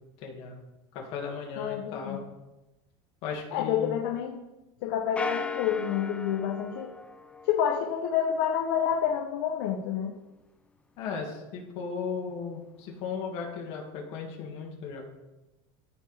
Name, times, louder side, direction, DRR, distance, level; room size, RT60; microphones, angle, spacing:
voice 1, 0.2-0.6 0.9-2.3 3.2-3.9 11.0-15.1, left 5 dB, 50° left, 0 dB, 2.3 m, -36 dB
voice 2, 1.6-2.2 3.5-4.4 4.8-6.9 7.4-10.1, left 9 dB, 70° left, 2 dB, 0.8 m, -28 dB
sound 1, 5.2-7.9, left 4 dB, 10° left, 0.4 m, -37 dB
14.0 x 4.7 x 3.5 m, 1.0 s
supercardioid pair, 150°, 13 cm